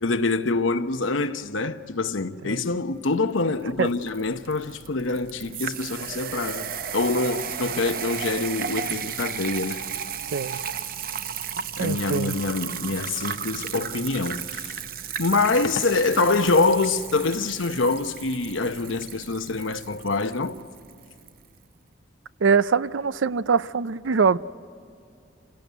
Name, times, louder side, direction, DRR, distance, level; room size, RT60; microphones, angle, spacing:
voice 1, 0.0-9.8 11.8-14.7 15.2-20.6, left 3 dB, 85° left, 1.0 m, -25 dB
sound 1, 3.4-21.4, right 8 dB, 45° right, 0.6 m, -34 dB
voice 2, 11.8-12.3 22.4-24.4, right 5 dB, 85° right, 0.5 m, -23 dB
27.0 x 17.5 x 9.3 m
head